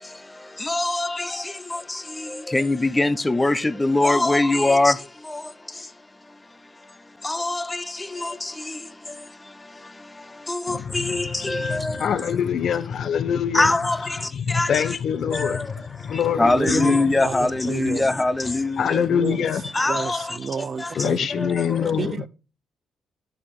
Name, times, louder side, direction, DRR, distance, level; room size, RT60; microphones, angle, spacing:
voice 1, 0.0-5.9 6.2-12.1 13.5-14.8 15.3-15.7 16.0-19.0 19.7-20.4 20.8-21.1 21.4-21.9, left 2 dB, 15° left, 0.7 m, -24 dB
voice 2, 10.7-13.7 14.0-17.2 18.7-19.7 20.1-20.2 20.9-22.2, left 8 dB, 55° left, 0.9 m, -25 dB
voice 3, 16.4-18.2 19.1-19.4 19.9-21.6 22.0-22.3, right 6 dB, 40° right, 0.5 m, -30 dB
12.5 x 6.6 x 3.7 m
cardioid pair, 130°, 0 cm